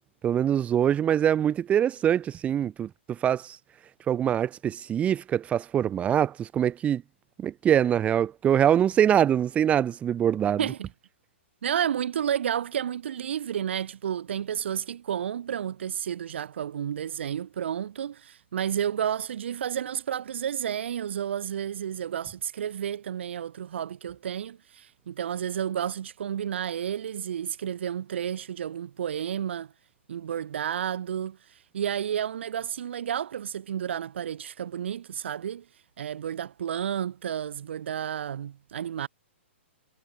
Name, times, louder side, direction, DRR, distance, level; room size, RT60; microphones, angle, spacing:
voice 1, 0.2-3.6 4.1-7.0 7.4-10.6, right 9 dB, 20° right, 7.5 m, -24 dB
voice 2, 10.6-10.9 11.6-29.7 30.1-35.7 36.0-39.1, right 9 dB, 65° right, 5.8 m, -31 dB
hypercardioid pair, 130°, 7 cm